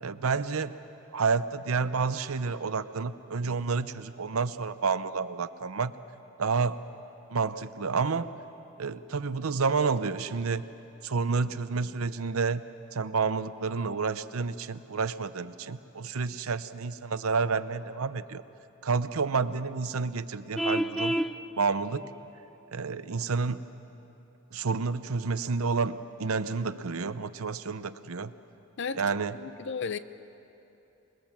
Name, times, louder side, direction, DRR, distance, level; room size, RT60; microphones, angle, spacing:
voice 1, 0.0-0.8 1.1-5.9 6.4-6.8 7.3-8.3 8.8-10.6 11.0-12.6 12.9-18.4 18.8-21.2 21.6-22.0 22.7-23.6 24.5-28.3 28.9-29.4, right 4 dB, 90° right, 13 dB, 0.7 m, -29 dB
Vehicle horn car horn honking, 20.6-21.3, equal, ahead, 0.5 m, -27 dB
voice 2, 29.3-30.0, left 5 dB, 60° left, 14 dB, 0.7 m, -34 dB
26.5 x 20.5 x 7.4 m, 3.0 s
head